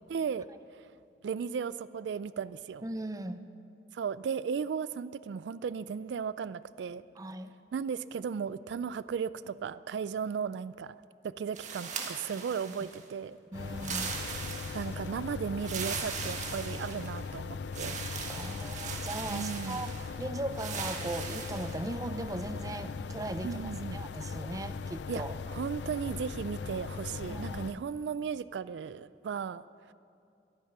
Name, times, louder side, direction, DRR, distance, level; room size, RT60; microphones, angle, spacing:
voice 1, 0.1-0.5 0.7-0.9 1.2-2.8 3.9-7.0 7.7-11.0 11.2-13.4 14.7-18.0 19.3-19.8 23.4-24.0 25.1-29.6, right 6 dB, 85° right, 16 dB, 0.3 m, -35 dB
voice 2, 2.8-3.4 7.2-7.5 13.5-14.1 17.8-18.0 18.3-25.3 27.3-27.8, right 1 dB, 20° right, 10 dB, 0.6 m, -38 dB
sound 1, 11.5-13.0 13.7-15.1 15.6-17.3 17.7-20.1 20.5-21.8, right 5 dB, 45° right, 1.5 m, -39 dB
sound 2, 13.5-27.7, left 5 dB, 80° left, 0.4 m, -39 dB
22.0 x 9.4 x 5.5 m, 2.5 s
head